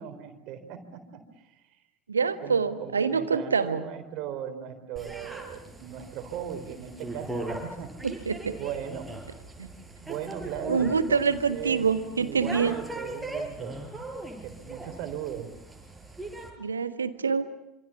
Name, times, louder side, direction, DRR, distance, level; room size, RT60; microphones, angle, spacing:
voice 1, 0.0-1.8 2.1-8.1 8.5-9.1 10.0-11.9 12.2-13.8 14.4-15.5, right 9 dB, 50° right, 8 dB, 4.0 m, -38 dB
voice 2, 2.1-3.8 8.0-8.6 9.6-9.7 10.7-12.8 16.6-17.4, right 5 dB, 80° right, 11 dB, 1.4 m, -26 dB
sound 1, 5.0-16.5, right 2 dB, 5° right, 6.5 m, -39 dB
26.5 x 26.5 x 7.2 m, 0.88 s
figure-of-eight pair, 70°, 0 cm